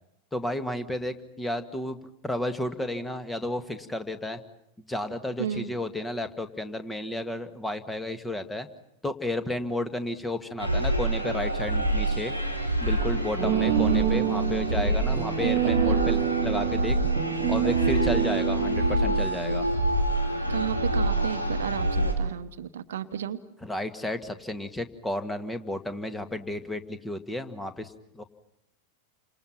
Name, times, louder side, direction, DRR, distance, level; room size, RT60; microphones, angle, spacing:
voice 1, 0.3-2.0 2.2-4.4 4.9-8.7 9.0-12.3 12.8-17.0 17.5-19.7 23.6-28.2, left 1 dB, 5° left, 9 dB, 1.8 m, -32 dB
sound 1, 10.6-22.1, right 1 dB, 85° left, 4.0 m, -26 dB
sound 2, 13.4-19.4, right 13 dB, 40° right, 1.3 m, -27 dB
voice 2, 15.6-16.0 20.5-23.4, right 9 dB, 60° right, 11 dB, 1.1 m, -33 dB
30.0 x 26.5 x 5.9 m, 0.77 s
figure-of-eight pair, 90°, 0 cm